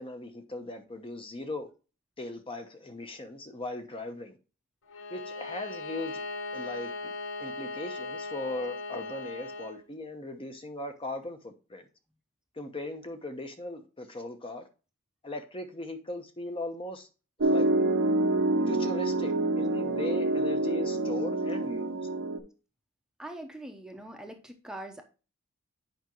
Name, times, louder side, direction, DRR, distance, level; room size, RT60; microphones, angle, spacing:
voice 1, 0.0-1.7 2.2-4.4 5.1-6.2 6.5-7.1 7.4-11.9 12.6-14.7 15.2-17.1 17.4-17.7 18.7-22.1, left 2 dB, 25° left, 0.9 m, -38 dB
Bowed string instrument, 4.9-9.8, left 3 dB, 65° left, 0.9 m, -38 dB
Piano, 17.4-22.4, right 2 dB, 70° right, 0.9 m, -27 dB
voice 2, 23.2-25.0, right 1 dB, 5° right, 0.8 m, -42 dB
8.0 x 5.1 x 3.0 m
head